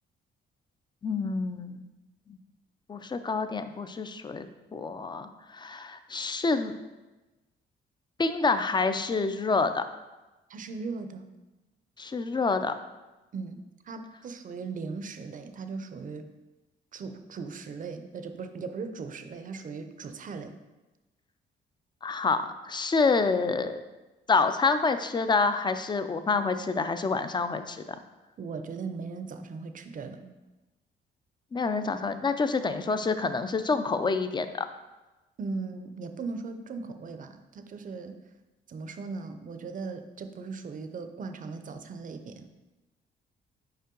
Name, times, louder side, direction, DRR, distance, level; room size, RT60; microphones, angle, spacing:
voice 1, 1.0-1.8 2.9-6.7 8.2-9.8 12.0-12.7 22.0-23.8 24.3-27.8 31.5-34.7, left 4 dB, 25° left, 10 dB, 0.4 m, -27 dB
voice 2, 10.5-11.3 13.3-16.3 16.9-20.5 28.4-30.3 35.4-38.2 38.7-42.5, right 4 dB, 40° right, 9 dB, 0.6 m, -38 dB
5.5 x 4.5 x 3.8 m, 1.1 s
cardioid pair, 90°, 20 cm